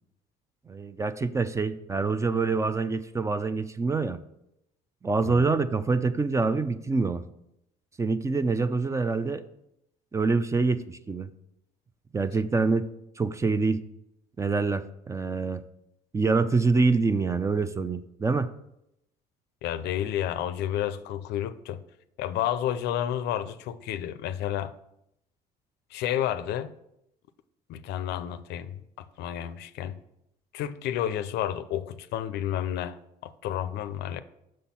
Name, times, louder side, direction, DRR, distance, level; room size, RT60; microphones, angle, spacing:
voice 1, 0.7-4.2 5.0-7.2 8.0-9.4 10.1-11.3 12.1-12.9 13.2-13.8 14.4-15.6 16.1-18.5, right 4 dB, 20° right, 0.3 m, -26 dB
voice 2, 19.6-21.8 22.2-24.7 25.9-26.7 27.7-28.8 29.2-30.0 30.5-34.2, left 11 dB, 80° left, 0.5 m, -31 dB
6.3 x 4.2 x 5.5 m
cardioid pair, 110°, 17 cm